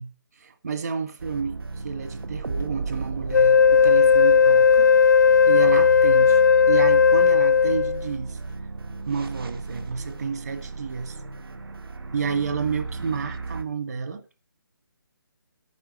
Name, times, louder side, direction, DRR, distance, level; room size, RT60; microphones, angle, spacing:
voice 1, 0.0-4.9 5.5-6.4 6.7-8.4 9.1-11.2 12.1-14.2, right 5 dB, 45° right, 1.7 m, -30 dB
sound 1, 1.2-13.6, right 4 dB, 75° right, 1.9 m, -35 dB
Wind instrument woodwind instrument, 3.3-8.1, left 6 dB, 50° left, 0.4 m, -16 dB
11.0 x 9.5 x 4.4 m
hypercardioid pair, 170°, 12 cm